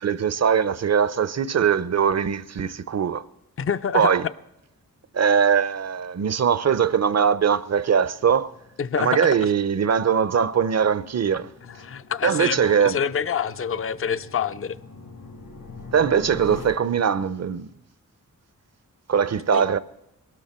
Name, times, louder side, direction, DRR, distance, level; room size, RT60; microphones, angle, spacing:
voice 1, 0.0-3.2 3.9-4.3 5.1-8.5 9.0-11.5 12.2-13.0 15.9-17.7 19.1-19.8, right 7 dB, 50° right, 0.6 m, -21 dB
voice 2, 3.6-4.1 8.8-9.4 11.6-14.8 19.5-19.7, left 7 dB, 40° left, 0.5 m, -27 dB
sound 1, 5.6-16.6, left 3 dB, 85° left, 4.1 m, -45 dB
22.5 x 12.5 x 4.3 m
wide cardioid pair, 105°, 33 cm